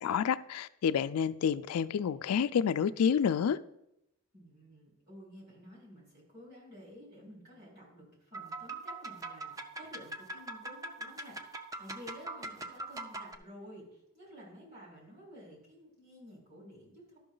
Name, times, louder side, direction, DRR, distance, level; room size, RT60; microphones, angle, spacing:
voice 1, 0.0-3.6, left 7 dB, 80° left, 0.3 m, -29 dB
voice 2, 4.3-17.2, equal, 45° right, 4.0 m, -52 dB
sound 1, 8.3-13.3, right 2 dB, 15° right, 0.4 m, -42 dB
12.0 x 5.8 x 3.8 m
head